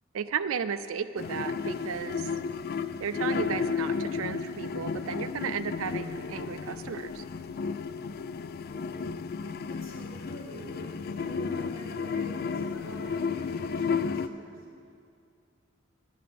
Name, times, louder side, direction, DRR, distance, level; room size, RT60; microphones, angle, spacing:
voice 1, 0.1-2.3 3.0-7.2, right 7 dB, 85° right, 11 dB, 0.4 m, -34 dB
sound 1, 1.2-14.3, left 5 dB, 50° left, 0.3 m, -33 dB
voice 2, 9.7-14.6, equal, 75° left, -3 dB, 2.2 m, -45 dB
9.9 x 9.2 x 6.8 m, 2.3 s
head